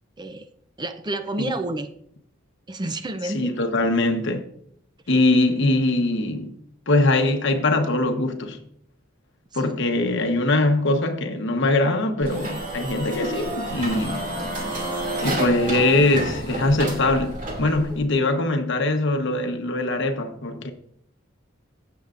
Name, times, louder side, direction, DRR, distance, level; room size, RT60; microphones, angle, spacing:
voice 1, 0.8-1.9 2.7-3.6 9.5-9.8, right 2 dB, 20° right, 0.5 m, -30 dB
voice 2, 3.2-4.5 5.1-6.6 6.9-8.6 9.5-14.3 14.6-14.9 15.2-20.7, left 2 dB, 65° left, 1.1 m, -22 dB
sound 1, 12.2-18.0, right 1 dB, 40° right, 2.5 m, -30 dB
15.5 x 7.0 x 2.5 m
head